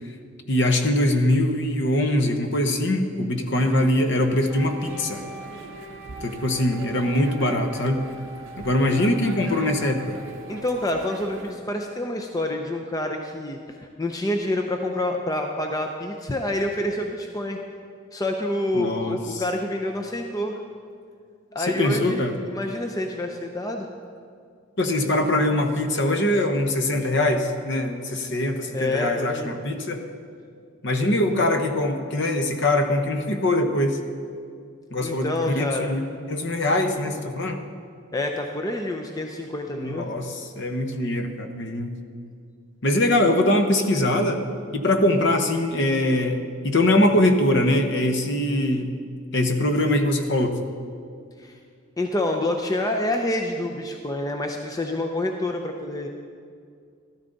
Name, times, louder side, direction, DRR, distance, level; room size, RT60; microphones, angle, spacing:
voice 1, 0.5-5.2 6.2-8.0 8.6-10.2 18.7-19.4 21.6-22.3 24.8-30.0 30.8-34.0 34.9-37.6 39.7-41.9 42.8-44.4 44.7-48.9 49.3-50.6, left 1 dB, 55° left, 6 dB, 0.9 m, -22 dB
sound 1, 3.6-11.5, right 3 dB, 60° right, 0.7 m, -42 dB
Wind instrument woodwind instrument, 4.4-12.5, right 1 dB, 15° right, 2.2 m, -43 dB
voice 2, 10.5-17.6 18.1-20.6 21.5-23.9 28.7-29.5 35.0-35.9 38.1-40.1 51.4-51.6 52.0-56.1, left 1 dB, 15° left, 3 dB, 0.5 m, -27 dB
13.5 x 13.0 x 4.0 m, 2.2 s
head